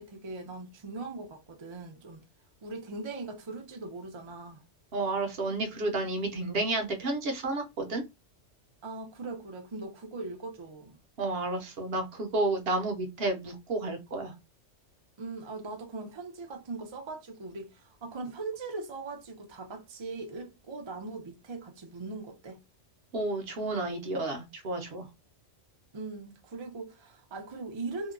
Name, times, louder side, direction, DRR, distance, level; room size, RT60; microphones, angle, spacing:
voice 1, 0.0-2.2 2.6-4.6 8.8-11.0 15.2-22.6 25.9-28.1, right 3 dB, 35° right, 0.4 m, -40 dB
voice 2, 4.9-8.0 11.2-14.3 23.1-25.1, right 2 dB, 60° right, 0.9 m, -31 dB
2.8 x 2.2 x 2.4 m
omnidirectional pair, 1.3 m